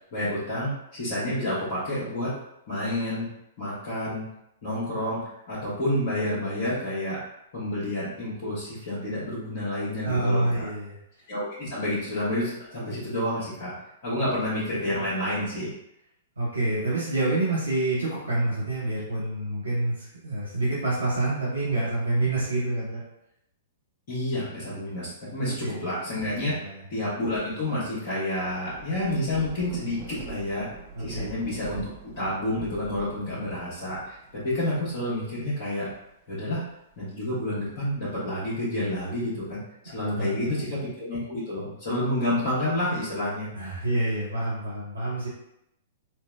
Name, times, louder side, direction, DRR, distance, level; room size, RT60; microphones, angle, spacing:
voice 1, 0.1-2.3 2.7-3.3 3.6-4.3 4.6-7.2 7.5-10.7 11.3-13.7 14.0-15.7 24.1-26.5 26.9-30.7 31.0-35.9 36.3-36.6 37.0-43.5, left 1 dB, 50° left, -11 dB, 1.2 m, -29 dB
voice 2, 10.0-11.0 16.4-23.0 25.5-25.9 26.6-26.8 30.9-31.3 39.9-40.6 43.5-45.3, right 2 dB, 80° right, -7 dB, 0.8 m, -27 dB
Thunder / Rain, 28.0-36.9 37.5-38.8, right 5 dB, 30° right, 0.5 m, -45 dB
4.3 x 2.0 x 2.2 m, 0.82 s
figure-of-eight pair, 110°, 0 cm